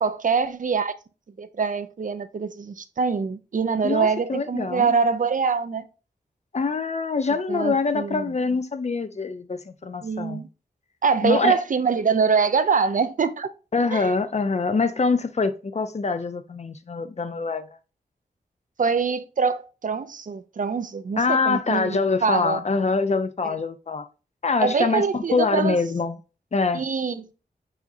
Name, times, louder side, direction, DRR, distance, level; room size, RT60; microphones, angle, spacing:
voice 1, 0.0-0.9 1.4-5.8 7.5-8.2 10.0-10.5 11.0-13.5 13.9-14.1 18.8-22.6 23.4-23.5 24.6-25.8 26.7-27.4, right 5 dB, 50° right, 0.5 m, -24 dB
voice 2, 3.8-4.9 6.5-10.5 11.2-11.6 13.7-17.8 21.2-24.1 24.4-26.2 26.5-26.8, left 4 dB, 40° left, 0.5 m, -24 dB
4.8 x 4.0 x 2.6 m
cardioid pair, 55°, 17 cm